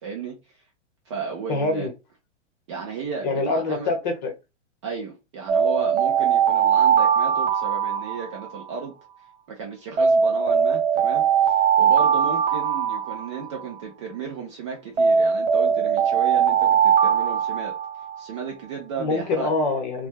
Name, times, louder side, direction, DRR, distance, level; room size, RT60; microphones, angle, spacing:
voice 1, 0.0-0.4 1.1-1.9 2.7-3.9 4.8-8.9 9.5-17.7 18.2-19.5, right 5 dB, 25° right, 0.5 m, -34 dB
voice 2, 1.5-1.9 3.2-4.3 19.0-20.1, left 3 dB, 35° left, 0.9 m, -25 dB
Alarm, 5.5-8.8 10.0-13.8 15.0-18.2, right 7 dB, 65° right, 1.1 m, -20 dB
3.3 x 2.2 x 2.4 m
hypercardioid pair, 160°, 37 cm